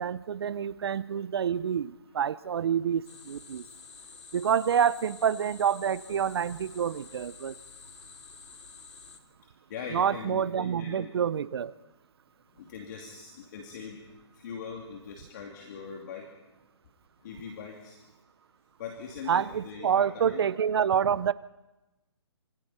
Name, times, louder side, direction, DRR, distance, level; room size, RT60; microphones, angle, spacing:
voice 1, 0.0-3.6 4.3-7.6 9.9-11.7 19.3-21.3, right 8 dB, 60° right, 17 dB, 0.8 m, -27 dB
sound 1, 3.0-9.2, left 5 dB, 75° left, 2.7 m, -49 dB
voice 2, 9.4-11.1 12.5-16.3 17.2-18.0 18.8-20.4, left 6 dB, 40° left, 1 dB, 2.9 m, -42 dB
26.5 x 26.0 x 4.4 m, 1.0 s
hypercardioid pair, 150°, 15 cm